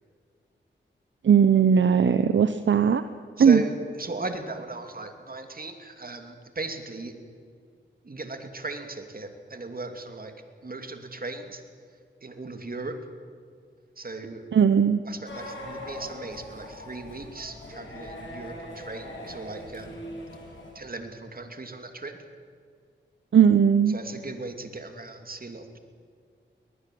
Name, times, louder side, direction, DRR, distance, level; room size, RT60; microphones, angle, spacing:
voice 1, 1.2-3.0 3.4-3.6 14.5-15.0 23.3-23.9, right 7 dB, 75° right, 11 dB, 0.8 m, -18 dB
voice 2, 3.4-7.1 8.0-10.3 10.6-11.6 12.2-13.0 14.0-14.5 15.0-20.0 20.7-22.2 23.9-25.8, right 2 dB, 50° right, 6 dB, 2.7 m, -37 dB
sound 1, 15.3-20.7, left 1 dB, 85° left, 6.2 m, -41 dB
22.5 x 19.5 x 7.8 m, 2.2 s
cardioid pair, 55°, 19 cm